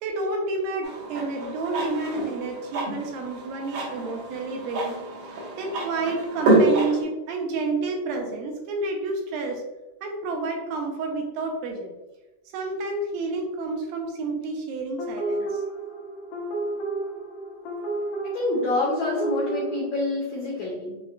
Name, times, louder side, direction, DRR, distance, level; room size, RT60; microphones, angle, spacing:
voice 1, 0.0-5.0 5.5-9.6 10.0-11.9 12.5-15.6, right 3 dB, 85° right, 2 dB, 2.3 m, -30 dB
sound 1, 0.8-7.0, right 2 dB, 70° right, 2.0 m, -27 dB
sound 2, 15.0-19.8, right 2 dB, 75° left, 1.7 m, -31 dB
voice 2, 18.3-21.0, left 2 dB, 90° left, -5 dB, 1.5 m, -27 dB
5.8 x 2.1 x 2.4 m, 1.0 s
omnidirectional pair, 3.9 m